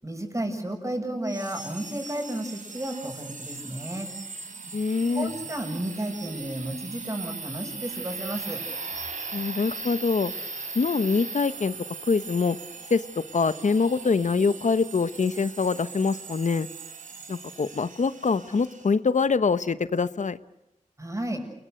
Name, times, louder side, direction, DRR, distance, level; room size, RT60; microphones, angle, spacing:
voice 1, 0.0-4.1 5.1-8.6 21.0-21.4, right 1 dB, 25° right, 4 dB, 7.0 m, -32 dB
sound 1, 1.2-18.9, right 4 dB, 85° right, 4.2 m, -39 dB
voice 2, 4.7-5.3 9.3-10.3 10.7-11.7 12.1-12.6 12.9-13.0 13.3-16.7 17.3-20.4, left 4 dB, 70° left, 14 dB, 1.1 m, -24 dB
28.5 x 21.5 x 8.1 m, 0.93 s
wide cardioid pair, 80°, 13 cm